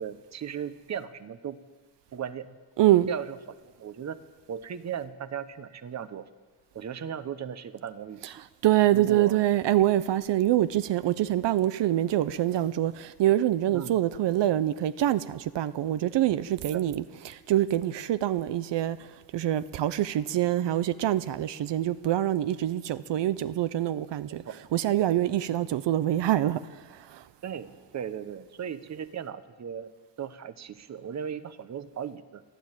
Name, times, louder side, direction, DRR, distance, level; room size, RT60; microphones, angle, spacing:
voice 1, 0.0-1.6 2.1-2.6 3.1-3.4 3.6-4.2 4.5-6.3 6.7-8.4 8.9-9.4 13.7-14.0 16.7-16.8 24.4-24.5 27.4-29.9 30.2-32.4, right 8 dB, 40° right, 0.9 m, -37 dB
voice 2, 2.8-3.1 8.6-24.4 24.7-27.2, right 13 dB, 75° right, 0.7 m, -25 dB
29.0 x 11.5 x 9.0 m
wide cardioid pair, 170°, 43 cm